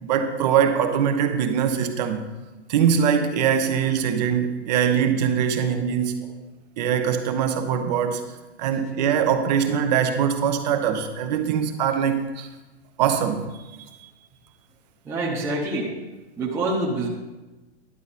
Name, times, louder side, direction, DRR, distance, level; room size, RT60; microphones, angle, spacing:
voice 1, 0.0-2.2 2.7-6.2 6.8-8.2 8.6-12.5 13.0-13.4, right 8 dB, 40° right, 7 dB, 1.0 m, -22 dB
voice 2, 15.0-15.9 16.4-17.1, right 2 dB, 10° right, -5 dB, 1.1 m, -26 dB
11.0 x 8.5 x 4.2 m, 1.1 s
hypercardioid pair, 150°, 34 cm